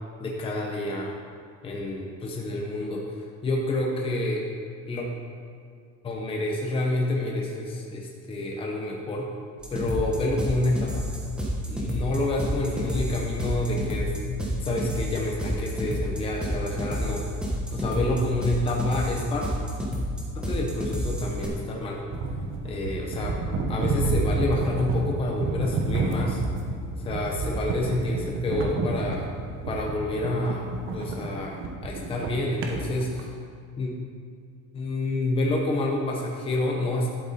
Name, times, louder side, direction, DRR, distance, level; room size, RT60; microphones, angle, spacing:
voice 1, 0.2-1.1 1.6-3.0 3.4-4.4 4.9-5.1 6.0-9.3 9.7-11.1 11.6-17.2 17.7-19.4 20.3-22.0 22.6-23.4 23.7-26.4 27.0-29.3 29.7-30.7 30.9-33.3 33.8-33.9 34.7-37.1, left 2 dB, 20° left, -1 dB, 0.9 m, -28 dB
sound 1, 9.6-21.5, equal, 5° right, 1.2 m, -30 dB
sound 2, 22.1-33.3, right 3 dB, 45° right, 1.2 m, -29 dB
11.5 x 7.9 x 4.2 m, 2.2 s
cardioid pair, 180°, 29 cm